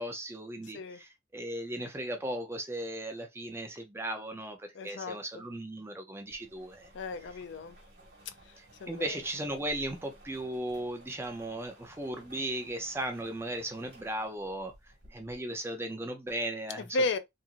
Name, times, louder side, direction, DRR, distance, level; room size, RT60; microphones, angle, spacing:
voice 1, 0.0-6.9 8.6-14.7 15.1-17.0, right 1 dB, 15° right, 0.5 m, -37 dB
voice 2, 4.7-5.2 6.9-7.8 8.8-9.2 16.8-17.2, left 2 dB, 70° left, 0.4 m, -33 dB
sound 1, 6.3-15.6, right 1 dB, 55° right, 1.5 m, -56 dB
2.9 x 2.5 x 2.4 m
head